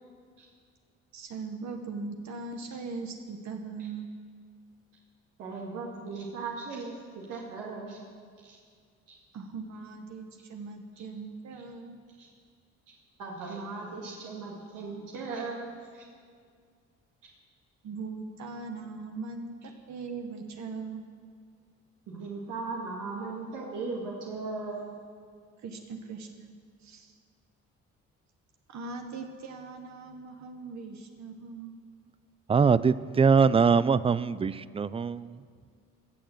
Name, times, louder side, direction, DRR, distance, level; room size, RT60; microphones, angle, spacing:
voice 1, 1.1-4.1 9.3-12.0 17.8-21.0 25.6-26.5 26.8-27.1 28.7-31.7, right 4 dB, 65° right, 4 dB, 1.2 m, -40 dB
voice 2, 5.4-8.0 8.4-8.6 9.1-9.2 11.5-11.6 12.2-12.3 12.9-16.1 22.1-25.0, right 3 dB, 90° right, -3 dB, 2.0 m, -38 dB
voice 3, 32.5-35.4, right 5 dB, 20° right, 17 dB, 0.3 m, -23 dB
16.0 x 6.6 x 7.7 m, 2.1 s
cardioid pair, 90°, 30 cm